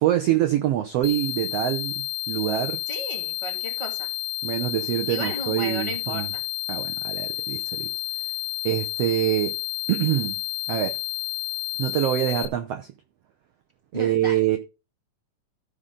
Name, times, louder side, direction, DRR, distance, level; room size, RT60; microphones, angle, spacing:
voice 1, 0.0-2.8 4.4-6.3 6.7-7.9 8.6-9.5 9.9-10.4 10.7-11.0 11.8-12.9 13.9-14.6, right 13 dB, 85° right, 1.4 m, -25 dB
sound 1, 1.0-12.5, left 15 dB, 85° left, 2.3 m, -31 dB
voice 2, 2.9-4.1 5.1-6.4 13.9-14.4, right 1 dB, 15° left, 1.3 m, -34 dB
14.0 x 5.2 x 3.7 m
omnidirectional pair, 3.7 m